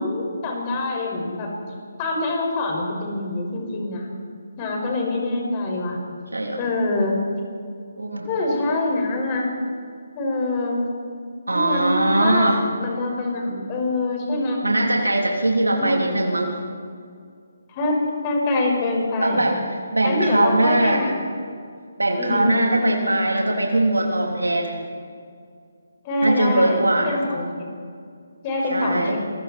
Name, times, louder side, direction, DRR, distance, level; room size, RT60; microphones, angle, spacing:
voice 1, 0.0-1.5 2.0-4.1 4.6-6.0 6.5-7.2 8.3-9.5 10.2-10.9 11.5-14.6 15.7-16.1 17.7-19.6 20.0-21.2 22.2-23.1 26.0-27.5 28.4-29.2, left 2 dB, 25° left, 0 dB, 5.8 m, -25 dB
voice 2, 8.0-8.3 11.5-12.6 14.6-16.6 19.2-21.0 22.0-24.8 26.2-27.2 28.7-29.2, right 1 dB, 85° right, 1 dB, 3.5 m, -21 dB
28.0 x 22.0 x 4.5 m, 2.2 s
figure-of-eight pair, 145°, 0 cm